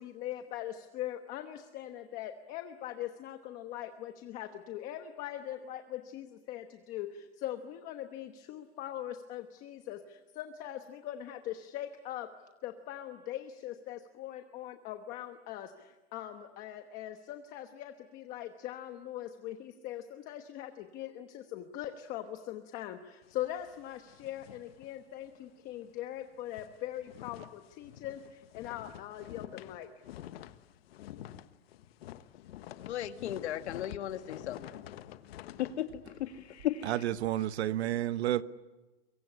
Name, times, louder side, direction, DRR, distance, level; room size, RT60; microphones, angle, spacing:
voice 1, 0.0-12.3 12.6-29.9, left 12 dB, 25° left, 1.1 m, -41 dB
sound 1, 23.2-25.5 25.8-26.0 26.3-37.5, left 12 dB, 65° left, 1.3 m, -49 dB
voice 2, 32.8-34.7 35.4-36.9, left 11 dB, 90° left, 2.2 m, -36 dB
voice 3, 36.8-38.4, right 13 dB, 75° right, 1.3 m, -30 dB
24.0 x 23.5 x 9.9 m
supercardioid pair, 180°, 33 cm